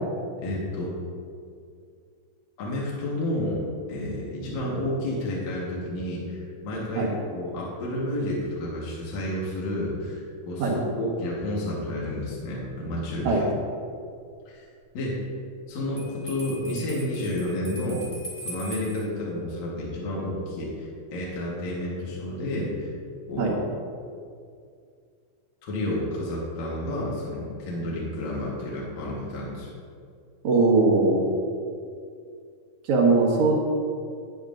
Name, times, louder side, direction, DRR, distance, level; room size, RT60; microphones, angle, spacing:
voice 1, 0.4-0.9 2.6-3.6 3.9-13.5 14.5-14.6 14.9-15.2 15.7-18.1 18.4-22.9 23.3-23.6 25.6-29.7, left 1 dB, 65° left, -5 dB, 2.6 m, -30 dB
Bell, 16.0-19.1, right 1 dB, 35° left, 2.3 m, -40 dB
voice 2, 30.4-31.3 32.9-33.6, right 3 dB, 70° right, -3 dB, 2.6 m, -20 dB
11.0 x 8.7 x 2.5 m, 2.3 s
omnidirectional pair, 3.6 m